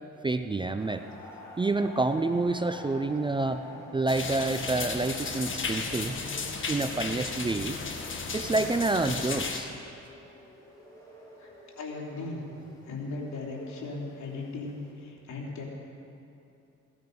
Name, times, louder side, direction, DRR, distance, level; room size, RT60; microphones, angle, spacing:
voice 1, 0.2-1.0 1.6-3.6 3.9-6.2 6.7-7.8 8.3-9.7, right 3 dB, 15° right, 9 dB, 0.5 m, -28 dB
sound 1, 0.8-14.9, left 1 dB, 10° left, 4.1 m, -50 dB
sound 2, 2.4-8.9, right 3 dB, 75° right, 1.9 m, -49 dB
sound 3, 4.1-9.6, left 4 dB, 40° left, 1.7 m, -34 dB
voice 2, 11.4-12.5 12.8-15.6, left 3 dB, 65° left, -2 dB, 3.3 m, -38 dB
17.0 x 13.0 x 5.3 m, 2.7 s
cardioid pair, 90°, 30 cm